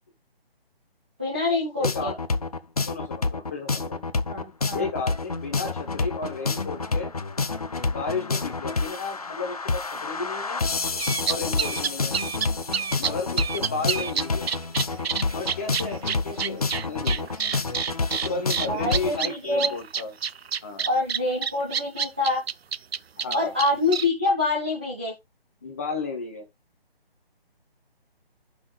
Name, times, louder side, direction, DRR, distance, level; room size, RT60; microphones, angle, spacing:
voice 1, 1.2-2.1 4.3-4.9 18.7-19.8 20.8-22.4 23.3-25.1, left 2 dB, 10° right, 0.7 m, -26 dB
sound 1, 1.8-19.2, left 3 dB, 40° left, 0.6 m, -28 dB
voice 2, 1.8-2.2 2.9-4.0 4.7-7.1 7.9-10.6 11.3-12.2 13.0-14.5 15.3-17.3 18.1-20.1 20.6-20.9 23.2-23.5 25.6-26.4, left 4 dB, 15° left, 1.3 m, -33 dB
sound 2, 11.0-24.1, right 7 dB, 80° right, 0.6 m, -28 dB
15.5 x 6.1 x 2.4 m
hypercardioid pair, 175°, 30 cm